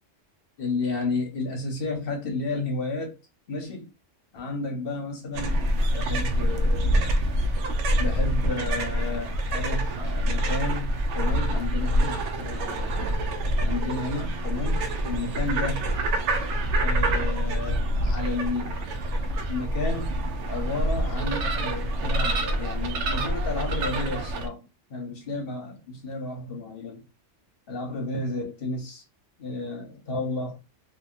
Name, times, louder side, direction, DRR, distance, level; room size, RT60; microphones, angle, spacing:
voice 1, 0.6-3.2 3.5-3.9 4.3-7.1 8.0-13.0 13.6-15.9 16.8-18.8 19.5-20.1 20.5-24.6 24.9-27.0 27.7-29.0 29.4-30.6, left 3 dB, 55° left, 1.0 m, -32 dB
sound 1, 5.3-24.5, right 1 dB, 75° right, 0.9 m, -26 dB
2.7 x 2.6 x 2.4 m
omnidirectional pair, 1.2 m